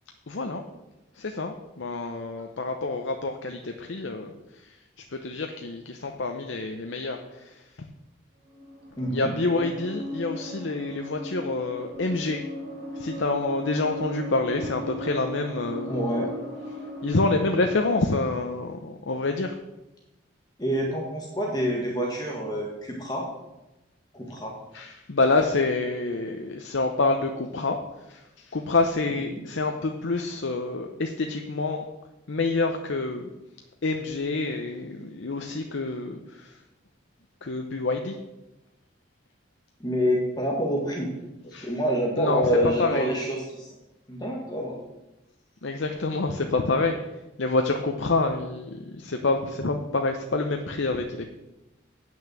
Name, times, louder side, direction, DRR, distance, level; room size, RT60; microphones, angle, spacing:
voice 1, 0.3-0.6 1.1-4.8 5.1-7.9 9.1-12.4 12.9-16.2 17.0-19.6 24.7-31.8 32.3-33.3 33.8-36.6 37.4-38.2 41.5-41.7 42.2-43.1 45.6-51.2, left 3 dB, 70° left, 4 dB, 0.8 m, -27 dB
sound 1, 8.5-18.0, equal, 55° right, 4.2 m, -37 dB
voice 2, 9.0-9.3 15.9-16.3 20.6-23.3 24.1-24.5 29.3-29.4 39.8-41.1 41.4-43.7 44.1-44.8, equal, 20° left, -1 dB, 1.6 m, -27 dB
9.0 x 6.3 x 7.5 m, 0.97 s
head